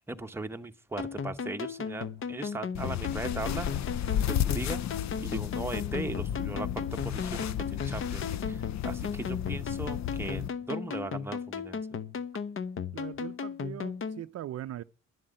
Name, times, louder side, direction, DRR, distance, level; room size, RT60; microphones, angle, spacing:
voice 1, 0.0-3.7 4.2-4.8 5.2-11.8, right 2 dB, 10° right, 1.0 m, -38 dB
sound 1, 1.0-14.2, left 6 dB, 45° left, 0.9 m, -36 dB
sound 2, 2.7-10.5, left 11 dB, 65° left, 0.6 m, -33 dB
voice 2, 12.9-14.8, right 12 dB, 55° right, 0.5 m, -40 dB
11.0 x 7.5 x 8.9 m
cardioid pair, 90°, 30 cm